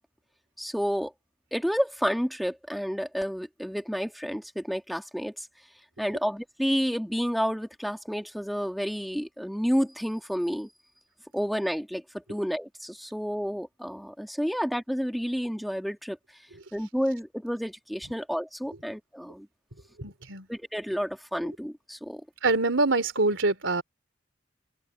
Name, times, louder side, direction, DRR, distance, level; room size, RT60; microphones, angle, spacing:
voice 1, 0.6-1.1 1.5-5.5 6.0-10.7 11.3-16.2 16.7-19.5 20.5-22.2, equal, ahead, 1.8 m, -30 dB
voice 2, 20.0-20.4 22.4-23.8, right 3 dB, 85° right, 3.3 m, -25 dB
open air
head